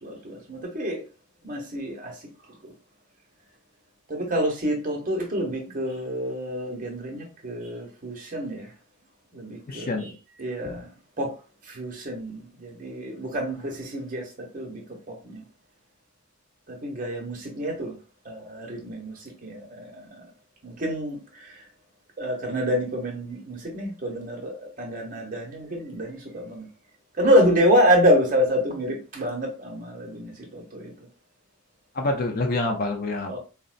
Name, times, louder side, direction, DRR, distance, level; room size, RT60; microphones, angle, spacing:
voice 1, 0.0-1.0 1.4-2.2 2.6-2.7 4.1-8.7 9.3-10.1 10.4-10.9 11.2-11.3 11.6-14.8 15.1-15.4 16.7-17.9 18.2-20.3 20.6-21.6 22.2-26.7 27.2-31.1 33.2-33.4, equal, 35° right, 0.8 m, -27 dB
voice 2, 9.7-10.1 10.6-10.8 31.9-33.4, left 2 dB, 40° left, 0.5 m, -27 dB
3.8 x 2.1 x 2.4 m
head